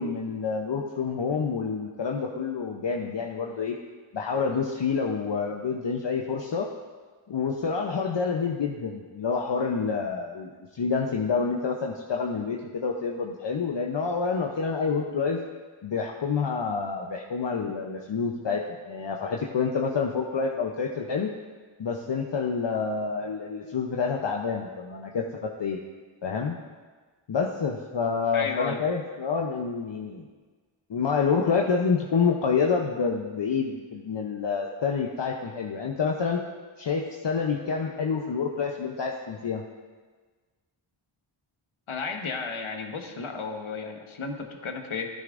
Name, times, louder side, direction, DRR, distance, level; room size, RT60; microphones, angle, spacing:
voice 1, 0.0-3.8 4.1-6.7 7.3-15.4 15.8-21.3 21.8-25.8 26.2-26.6 27.3-30.3 30.9-36.4 36.8-39.6, left 5 dB, 60° left, 0 dB, 0.8 m, -28 dB
voice 2, 28.3-28.8 41.9-45.1, left 4 dB, 75° left, 4 dB, 1.2 m, -33 dB
14.0 x 9.6 x 2.6 m, 1.4 s
cardioid pair, 50°, 49 cm